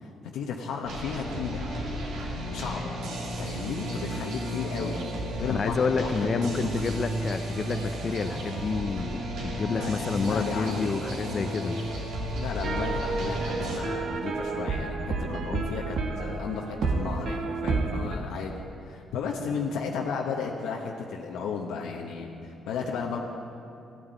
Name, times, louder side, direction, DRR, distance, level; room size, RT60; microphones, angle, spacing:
voice 1, 0.0-1.6 2.5-2.9 3.4-5.0 5.3-7.0 9.6-10.9 12.4-23.2, left 5 dB, 90° left, -1 dB, 1.2 m, -34 dB
sound 1, 0.8-13.8, right 1 dB, 85° right, 3.0 m, -33 dB
voice 2, 5.5-11.8, left 5 dB, 45° left, 8 dB, 0.7 m, -29 dB
sound 2, 12.6-18.2, right 3 dB, 65° right, 1.4 m, -30 dB
15.5 x 9.6 x 9.0 m, 2.6 s
cardioid pair, 90°, 0 cm